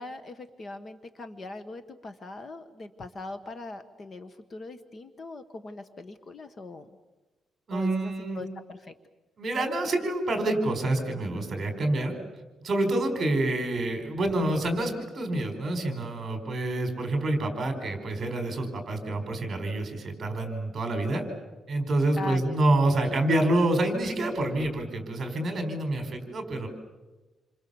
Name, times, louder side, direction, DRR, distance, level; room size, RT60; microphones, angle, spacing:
voice 1, 0.0-6.9 7.7-8.9 13.5-13.6 22.2-22.5 22.8-23.2, left 2 dB, 35° left, 9 dB, 1.3 m, -41 dB
voice 2, 7.7-8.4 9.4-12.1 12.6-21.2 21.7-26.7, right 2 dB, 30° right, 6 dB, 4.8 m, -27 dB
28.5 x 26.0 x 7.1 m, 1.2 s
cardioid pair, 160°, 0 cm